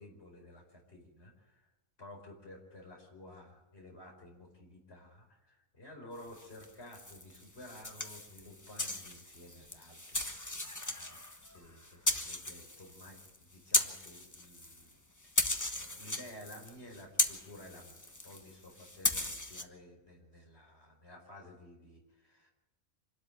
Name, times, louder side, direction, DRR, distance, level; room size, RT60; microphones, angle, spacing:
voice 1, 0.0-1.7 2.0-15.4 15.7-22.5, left 1 dB, 45° left, 1 dB, 5.1 m, -53 dB
sound 1, 6.3-14.9 15.2-19.6, left 1 dB, 15° left, 1.3 m, -36 dB
26.5 x 13.0 x 8.6 m, 1.0 s
omnidirectional pair, 1.5 m